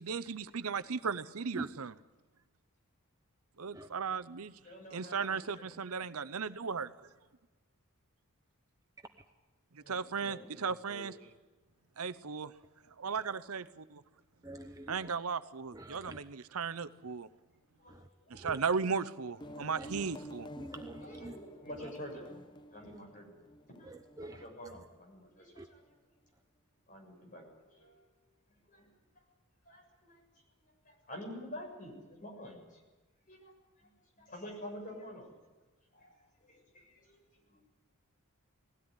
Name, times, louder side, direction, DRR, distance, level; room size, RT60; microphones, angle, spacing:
voice 1, 0.0-1.9 3.6-4.5 4.9-6.9 9.7-11.1 12.0-12.5 13.0-14.0 14.9-16.2 16.5-17.3 18.3-20.5, right 5 dB, 75° right, 12 dB, 0.8 m, -36 dB
voice 2, 4.6-5.2 5.5-5.7 9.8-10.5 10.8-11.1 17.7-18.0 18.2-18.4 21.2-22.4 22.7-23.4 23.7-23.9 24.2-25.8 26.9-28.1 28.5-28.9 29.1-29.2 29.6-30.3 30.6-32.8 33.3-33.9 34.2-35.3 35.9-37.6, left 1 dB, 35° left, 1 dB, 7.2 m, -49 dB
voice 3, 14.4-15.1 15.7-16.2 17.9-18.6 19.7-19.9 20.6-21.4 21.8-21.9 22.8-23.0 23.8-24.9 25.6-25.7 26.3-26.4, right 2 dB, 15° right, 6 dB, 0.8 m, -47 dB
sound 1, 19.4-24.8, equal, 20° left, 0.6 m, -50 dB
20.5 x 17.0 x 9.8 m, 1.3 s
head